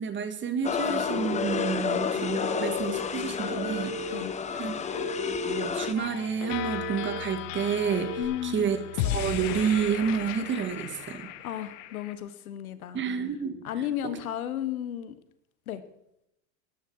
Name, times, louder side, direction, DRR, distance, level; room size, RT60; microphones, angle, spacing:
voice 1, 0.0-3.9 4.6-4.8 5.4-8.8 9.1-11.3 12.9-13.6, right 7 dB, 25° right, 10 dB, 1.8 m, -29 dB
sound 1, 0.6-5.9, left 6 dB, 15° left, 0.9 m, -30 dB
Telephone, 2.2-2.9 3.4-4.2 4.9-5.7 6.1-7.2 7.8-8.2, equal, 35° left, 4.5 m, -36 dB
sound 2, 6.0-12.1, left 12 dB, 60° left, 1.4 m, -35 dB
voice 2, 8.2-8.8 11.4-13.0 13.6-15.2 15.7-15.8, left 11 dB, 90° left, 12 dB, 1.6 m, -33 dB
18.5 x 11.0 x 4.8 m, 0.82 s
supercardioid pair, 125°, 42 cm